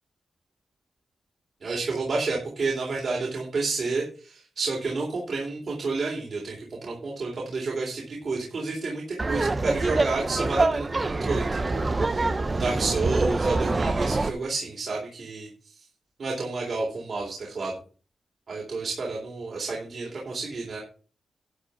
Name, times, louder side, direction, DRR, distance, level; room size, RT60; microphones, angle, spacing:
voice 1, 1.6-15.5 16.2-17.8 18.5-20.8, right 3 dB, 45° right, -3 dB, 3.6 m, -30 dB
Laughter, 9.2-14.3, right 3 dB, 25° right, 0.7 m, -25 dB
11.5 x 5.0 x 7.6 m, 0.39 s
wide cardioid pair, 145°, 0 cm